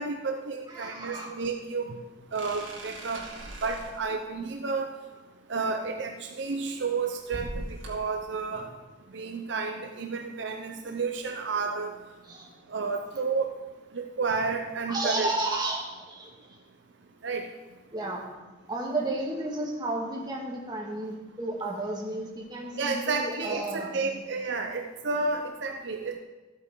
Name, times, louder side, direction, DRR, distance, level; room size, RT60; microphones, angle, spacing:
voice 1, 0.0-2.0 2.3-3.3 3.6-4.9 5.5-7.5 7.9-8.7 9.1-12.0 12.7-13.5 13.9-15.3 17.2-17.5 22.8-26.2, right 4 dB, 65° right, 5 dB, 0.6 m, -31 dB
voice 2, 0.7-1.3 8.6-8.7 10.8-10.9 12.3-12.5 14.9-16.6 17.9-18.2 18.7-24.1, right 2 dB, 20° right, -1 dB, 1.8 m, -33 dB
sound 1, 2.3-4.1 6.6-8.1, right 1 dB, 80° right, 2.1 m, -40 dB
13.5 x 8.5 x 3.8 m, 1.2 s
head